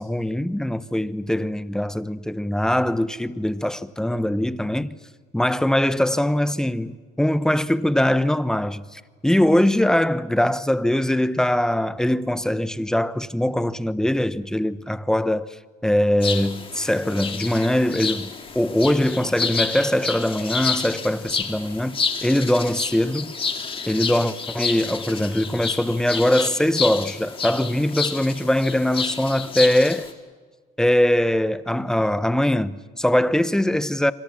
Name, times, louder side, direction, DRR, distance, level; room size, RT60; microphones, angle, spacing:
voice 1, 0.0-4.9 5.3-15.6 15.8-23.3 23.9-30.1 30.8-34.1, left 1 dB, 5° left, 0.8 m, -22 dB
sound 1, 16.2-30.1, left 5 dB, 30° left, 2.3 m, -29 dB
27.0 x 25.5 x 7.3 m
cardioid pair, 110°, 17 cm